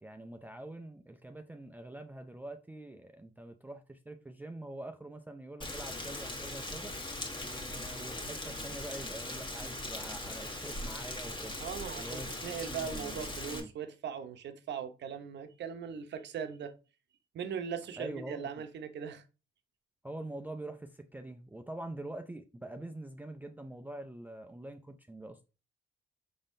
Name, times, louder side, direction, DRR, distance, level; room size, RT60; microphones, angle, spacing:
voice 1, 0.0-6.9 7.4-11.6 12.0-13.7 18.0-18.5 20.0-25.4, right 1 dB, 10° right, 0.4 m, -45 dB
Rain, 5.6-13.6, left 1 dB, 25° left, 1.2 m, -40 dB
voice 2, 11.6-16.7 17.3-19.2, right 7 dB, 60° right, 0.7 m, -39 dB
5.3 x 3.6 x 2.6 m
cardioid pair, 90°, 20 cm